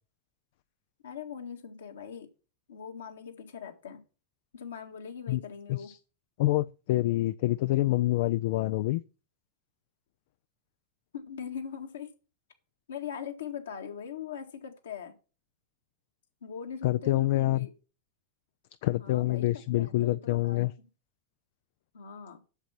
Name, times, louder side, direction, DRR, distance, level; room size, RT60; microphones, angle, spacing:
voice 1, 1.0-2.3 2.7-4.0 4.5-5.9 11.1-12.1 12.9-15.1 16.4-17.7 19.0-20.9 21.9-22.4, left 7 dB, 65° left, 1.9 m, -41 dB
voice 2, 6.4-9.0 16.8-17.7 18.8-20.7, left 16 dB, 50° left, 0.4 m, -26 dB
8.1 x 7.1 x 6.0 m
figure-of-eight pair, 90°, 0 cm